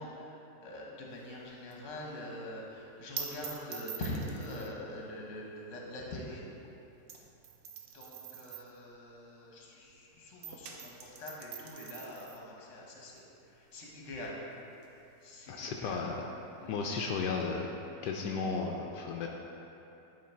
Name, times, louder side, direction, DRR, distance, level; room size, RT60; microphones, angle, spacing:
voice 1, 0.0-6.5 7.9-14.4 15.2-16.0 16.6-16.7, left 1 dB, 50° left, -3 dB, 1.3 m, -44 dB
sound 1, 1.1-10.0 10.3-17.5, right 7 dB, 85° right, 1.3 m, -47 dB
voice 2, 15.5-16.3 16.7-17.7 18.0-19.3, left 4 dB, 80° left, 0 dB, 1.2 m, -34 dB
10.5 x 3.8 x 4.4 m, 2.9 s
omnidirectional pair, 1.9 m